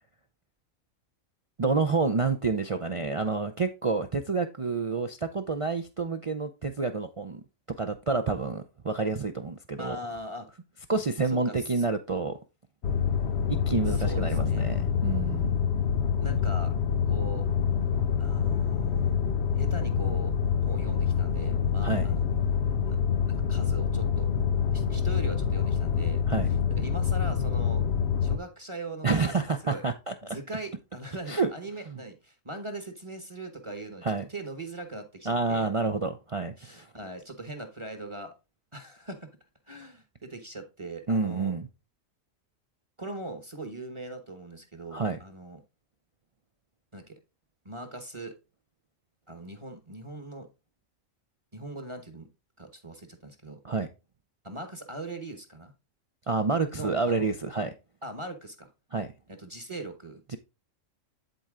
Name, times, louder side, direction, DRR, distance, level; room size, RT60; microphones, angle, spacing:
voice 1, 1.6-7.4 7.8-10.0 10.9-12.4 13.5-15.5 21.8-22.1 26.3-26.5 29.0-30.1 31.3-31.5 31.9-32.0 34.0-34.2 35.3-36.9 41.1-41.7 44.9-45.2 53.6-53.9 56.3-57.7 58.9-59.1, right 4 dB, 55° right, 0.3 m, -28 dB
voice 2, 9.8-10.5 11.3-11.8 13.9-14.7 16.2-16.7 17.1-17.5 18.2-19.2 19.5-20.3 20.6-22.3 22.8-24.3 24.7-26.2 26.7-27.8 28.2-29.8 30.2-35.7 36.6-38.3 38.7-39.3 39.7-41.5 43.0-45.6 46.9-47.2 47.6-48.3 49.3-50.5 51.5-52.3 52.6-53.6 54.4-55.7 56.8-57.3 58.0-58.7 59.3-60.2, right 2 dB, 25° right, 1.1 m, -40 dB
sound 1, 12.8-28.4, left 7 dB, 55° left, 1.0 m, -26 dB
10.5 x 4.4 x 3.7 m
omnidirectional pair, 1.4 m